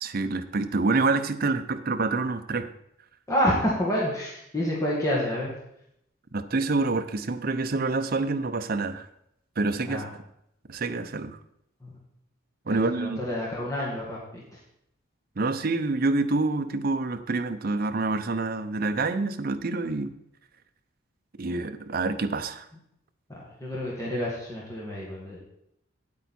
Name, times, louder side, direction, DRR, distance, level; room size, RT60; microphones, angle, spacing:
voice 1, 0.0-2.7 6.3-9.1 9.6-10.0 10.7-11.4 12.7-13.2 15.4-20.1 21.4-22.7, right 3 dB, 45° right, 9 dB, 0.6 m, -27 dB
voice 2, 3.3-5.5 9.8-10.1 11.8-11.9 12.7-14.6 23.3-25.4, equal, 15° left, -5 dB, 1.9 m, -29 dB
9.2 x 8.4 x 4.3 m, 0.75 s
head